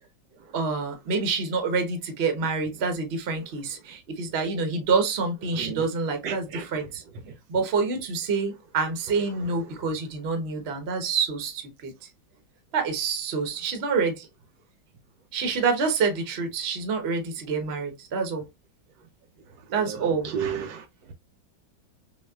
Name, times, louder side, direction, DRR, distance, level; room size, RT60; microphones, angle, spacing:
voice 1, 0.5-7.0 7.5-11.9 12.7-14.3 15.3-18.4 19.7-20.3, right 4 dB, 45° right, 0.9 m, -27 dB
voice 2, 5.5-5.8 6.2-6.7 19.8-20.8, right 7 dB, 75° right, 1.3 m, -32 dB
6.2 x 2.3 x 2.3 m
omnidirectional pair, 2.2 m